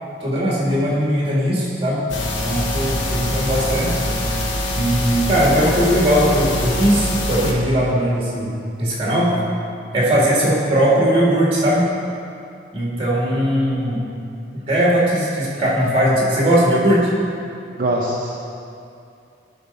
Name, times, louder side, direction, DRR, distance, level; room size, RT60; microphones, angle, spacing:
voice 1, 0.2-2.0 2.4-4.0 4.7-8.5 8.8-9.3 9.9-11.9 12.7-14.0 14.7-17.1, equal, 30° right, -5 dB, 1.9 m, -19 dB
sound 1, 2.1-7.5, left 1 dB, 85° left, 1.1 m, -23 dB
voice 2, 12.8-13.4 17.7-18.3, right 1 dB, 50° right, -4 dB, 0.7 m, -25 dB
10.5 x 4.3 x 5.5 m, 2.5 s
head